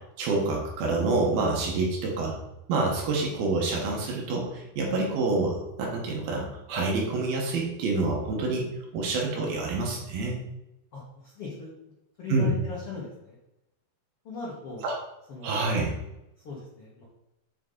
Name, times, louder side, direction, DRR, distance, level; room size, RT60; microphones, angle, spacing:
voice 1, 0.2-2.3 2.7-8.7 8.9-10.4 12.3-12.6 14.8-14.9 15.4-15.9, right 3 dB, 70° right, -1 dB, 2.8 m, -27 dB
voice 2, 11.4-11.7 12.2-13.3 14.2-14.8 15.3-15.7 16.4-17.0, left 4 dB, 70° left, -5 dB, 1.4 m, -39 dB
7.4 x 5.4 x 3.8 m, 0.90 s
omnidirectional pair, 4.9 m